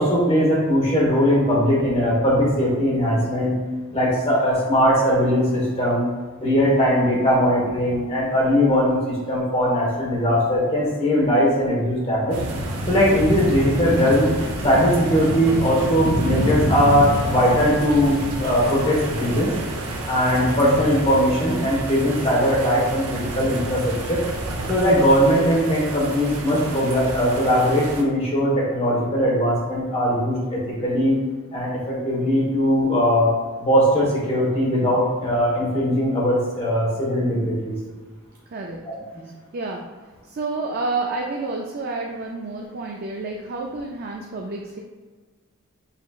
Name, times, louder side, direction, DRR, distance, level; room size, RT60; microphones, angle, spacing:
voice 1, 0.0-3.6 3.9-6.1 6.4-12.4 12.9-14.3 14.6-19.5 20.1-24.2 24.7-31.1 31.5-33.3 33.6-37.7 38.8-38.9, equal, 30° left, -5 dB, 1.2 m, -20 dB
sound 1, 12.3-28.0, right 1 dB, 75° right, 0.7 m, -28 dB
voice 2, 38.5-38.8 39.5-39.8 40.2-44.8, right 3 dB, 45° right, 0 dB, 0.4 m, -29 dB
5.7 x 3.1 x 2.4 m, 1.4 s
head